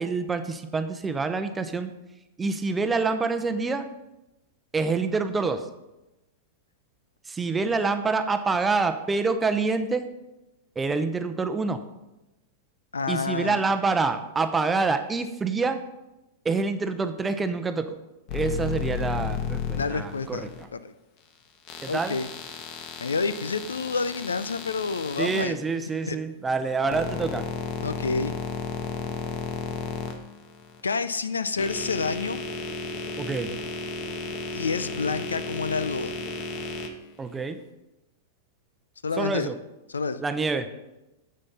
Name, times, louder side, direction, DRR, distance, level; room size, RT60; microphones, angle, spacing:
voice 1, 0.0-1.9 2.4-3.9 4.7-5.7 7.3-10.1 10.8-11.8 13.1-15.8 16.4-18.0 18.3-20.7 21.8-22.2 25.2-27.5 33.2-33.5 37.2-37.6 39.2-39.6 40.2-40.7, right 4 dB, 15° right, 9 dB, 0.7 m, -26 dB
voice 2, 12.9-13.6 19.8-20.9 21.9-22.3 23.0-25.6 26.1-26.2 27.8-28.3 30.8-32.4 34.5-36.2 39.0-39.5 39.9-40.2, left 4 dB, 80° left, 13 dB, 0.5 m, -28 dB
sound 1, 18.3-20.6 21.7-25.4 26.5-30.8 31.4-36.9, left 5 dB, 45° left, 1.2 m, -33 dB
9.8 x 7.6 x 4.1 m, 0.98 s
figure-of-eight pair, 100°, 0 cm